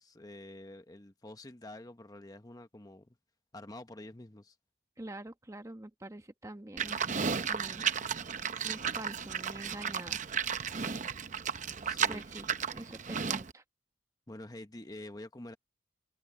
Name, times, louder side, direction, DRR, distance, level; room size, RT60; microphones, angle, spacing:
voice 1, 0.0-3.1 3.5-4.6 11.8-12.2 14.3-15.6, left 1 dB, 20° left, 1.0 m, -47 dB
voice 2, 5.0-7.9 8.6-10.3 12.1-13.6, right 1 dB, 15° right, 1.0 m, -46 dB
Livestock farm animals working animals, 6.8-13.5, right 7 dB, 40° right, 0.7 m, -34 dB
head